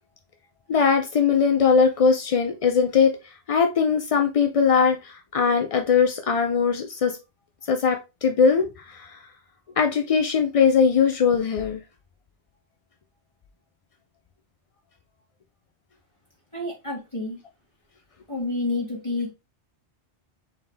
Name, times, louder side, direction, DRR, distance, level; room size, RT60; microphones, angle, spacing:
voice 1, 0.7-3.2 3.5-7.2 7.7-9.2 9.8-11.8, left 6 dB, 60° left, 0.3 m, -20 dB
voice 2, 16.5-17.4 18.3-19.3, left 2 dB, 25° left, 1.9 m, -29 dB
4.2 x 3.6 x 3.4 m
omnidirectional pair, 1.2 m